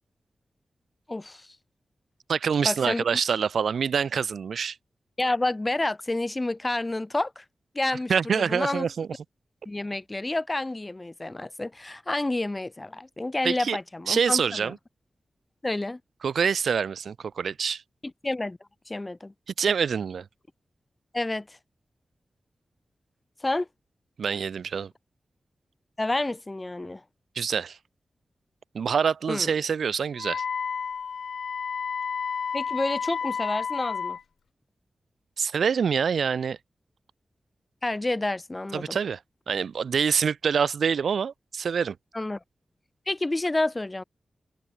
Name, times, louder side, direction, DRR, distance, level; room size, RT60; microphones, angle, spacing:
voice 1, 1.1-1.5 2.6-3.0 5.2-7.4 7.7-8.8 9.6-14.7 15.6-16.0 18.2-18.6 18.9-19.3 21.1-21.6 23.4-23.7 26.0-27.0 29.3-29.5 32.5-34.2 37.8-39.0 42.1-42.4 43.1-44.0, left 2 dB, 30° left, 7.9 m, -29 dB
voice 2, 2.3-4.8 8.1-9.1 13.4-13.8 14.1-14.8 16.2-17.8 19.6-20.2 24.2-24.9 27.3-27.8 28.7-30.4 35.4-36.6 38.7-39.2 39.5-42.0, right 6 dB, 85° right, 2.6 m, -26 dB
Wind instrument woodwind instrument, 30.2-34.2, left 6 dB, 85° left, 1.2 m, -31 dB
cardioid pair, 50°, 0 cm